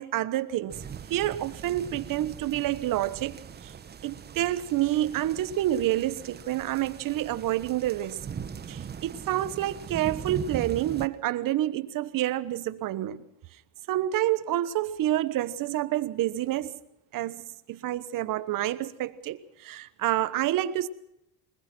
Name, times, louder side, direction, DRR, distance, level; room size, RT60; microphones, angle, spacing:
voice 1, 0.0-3.7 4.0-8.3 8.7-13.2 13.9-16.8 17.1-20.9, right 13 dB, 50° right, 1.3 m, -28 dB
sound 1, 0.7-11.1, right 7 dB, 25° right, 1.0 m, -41 dB
22.0 x 20.5 x 6.2 m
cardioid pair, 125°, 41 cm